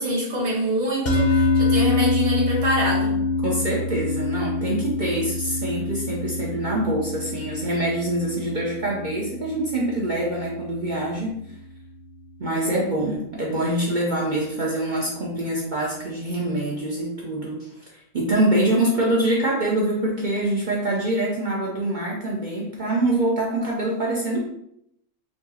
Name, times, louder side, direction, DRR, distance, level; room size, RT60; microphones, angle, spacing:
voice 1, 0.0-3.2, equal, 65° right, -4 dB, 1.4 m, -25 dB
sound 1, 1.1-11.5, left 3 dB, 45° left, 0.8 m, -26 dB
voice 2, 3.4-11.4 12.4-24.5, right 1 dB, 45° right, -4 dB, 0.7 m, -25 dB
4.6 x 2.8 x 2.8 m, 0.77 s
omnidirectional pair, 1.3 m